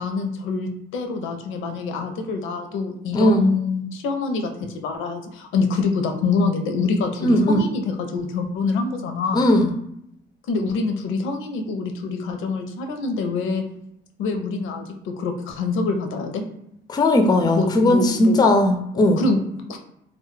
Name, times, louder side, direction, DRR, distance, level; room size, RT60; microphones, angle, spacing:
voice 1, 0.0-4.5 4.8-9.5 10.5-13.6 14.2-16.4 17.5-18.4 18.9-19.8, left 4 dB, 85° left, 5 dB, 0.5 m, -25 dB
voice 2, 7.2-7.6 9.3-9.7 16.9-19.2, left 1 dB, 20° left, 5 dB, 0.3 m, -17 dB
2.1 x 2.0 x 3.1 m, 0.77 s
cardioid pair, 90°, 20 cm